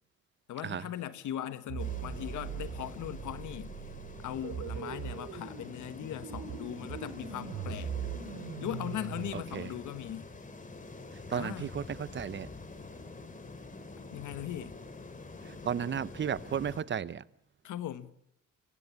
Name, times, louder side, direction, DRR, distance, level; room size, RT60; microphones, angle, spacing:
voice 1, 0.5-3.7 4.2-8.0 8.6-10.3 11.3-11.7 14.1-14.8 17.6-18.1, left 11 dB, 75° left, 1.3 m, -39 dB
sound 1, 1.7-9.3, right 8 dB, 85° right, 3.1 m, -40 dB
sound 2, 1.8-16.8, left 3 dB, 25° left, 2.8 m, -46 dB
voice 2, 9.3-9.7 11.3-12.5 15.4-17.2, right 8 dB, 40° right, 0.8 m, -34 dB
26.5 x 16.0 x 7.2 m
cardioid pair, 90°, 30 cm